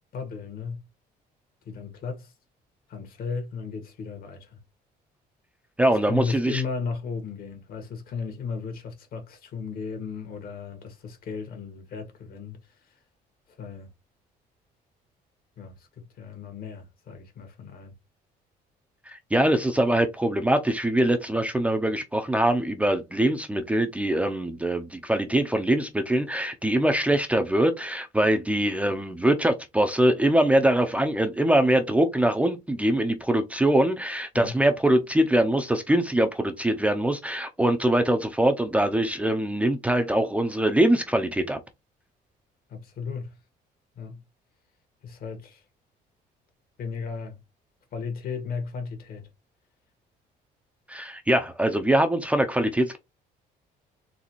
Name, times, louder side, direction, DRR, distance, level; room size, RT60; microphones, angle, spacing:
voice 1, 0.1-0.8 1.7-2.3 2.9-4.6 6.0-12.6 12.9-13.0 13.6-13.9 15.6-17.9 34.3-34.6 42.7-43.4 44.0-44.2 45.0-45.6 46.8-47.4 47.9-49.3, left 5 dB, 60° left, 1.8 m, -35 dB
voice 2, 5.8-6.6 19.1-41.6 50.9-53.0, right 1 dB, 10° right, 0.6 m, -23 dB
4.0 x 3.3 x 3.1 m
cardioid pair, 110°, 17 cm